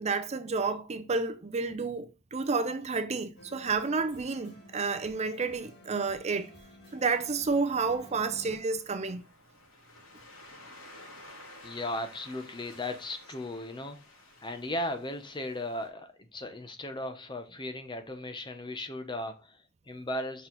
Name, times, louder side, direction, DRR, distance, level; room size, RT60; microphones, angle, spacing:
voice 1, 0.0-6.5 6.9-9.2, right 4 dB, 35° right, 0.5 m, -30 dB
sound 1, 3.3-8.6, left 1 dB, 55° left, 2.4 m, -52 dB
Waves surf, 8.2-15.9, left 1 dB, 85° left, 3.3 m, -52 dB
voice 2, 11.6-14.0 14.4-20.5, left 1 dB, 20° left, 0.8 m, -36 dB
5.5 x 4.6 x 3.9 m
head